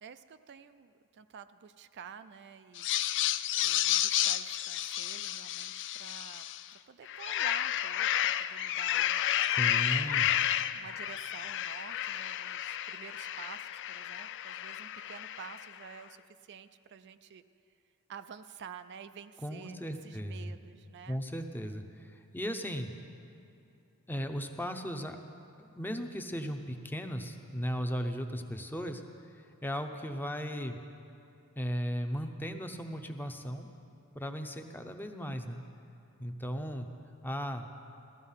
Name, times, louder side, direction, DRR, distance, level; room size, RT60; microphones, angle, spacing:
voice 1, 0.0-3.3 3.6-9.6 9.9-10.3 10.5-17.4 18.1-21.2, right 7 dB, 50° right, 11 dB, 0.4 m, -50 dB
sound 1, 2.8-6.7 7.1-15.7, left 12 dB, 55° left, 0.4 m, -31 dB
voice 2, 9.5-10.3 19.4-20.5 21.1-22.9 24.1-25.2 25.6-29.0 29.3-30.8 31.6-33.7 34.1-35.6 36.2-36.9 37.2-37.7, equal, 10° left, 6 dB, 0.7 m, -36 dB
15.0 x 14.5 x 5.6 m, 2.6 s
head